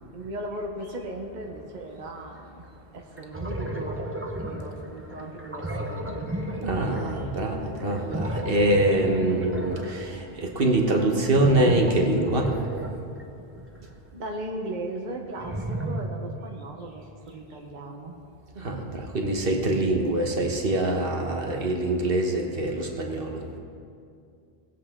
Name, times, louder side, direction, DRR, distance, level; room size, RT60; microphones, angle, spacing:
voice 1, 0.1-2.6 2.9-6.3 14.1-18.1, right 1 dB, 50° right, 1 dB, 1.1 m, -37 dB
sound 1, 2.6-2.7 3.2-13.8 15.1-16.0, right 1 dB, 15° right, 0.8 m, -33 dB
voice 2, 6.6-12.5 18.6-23.4, right 1 dB, 65° right, 2 dB, 1.3 m, -24 dB
19.5 x 7.9 x 3.6 m, 2.4 s
omnidirectional pair, 1.0 m